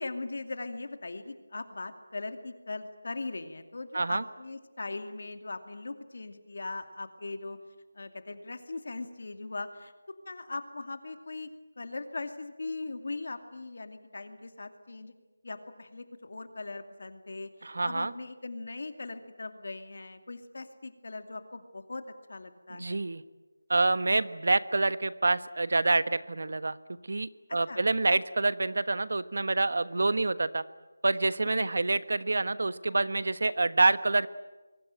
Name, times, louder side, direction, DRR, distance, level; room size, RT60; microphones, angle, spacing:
voice 1, 0.0-7.6 7.9-9.9 10.3-11.5 11.8-15.1 15.4-22.0 22.3-23.0 27.5-27.8 31.6-31.8, left 3 dB, 50° left, 8 dB, 2.5 m, -40 dB
voice 2, 17.6-18.1 22.8-23.2 23.7-26.8 27.1-30.6 31.0-34.3, right 2 dB, 55° right, 14 dB, 1.2 m, -27 dB
25.5 x 23.0 x 8.9 m, 1.2 s
figure-of-eight pair, 180°, 0 cm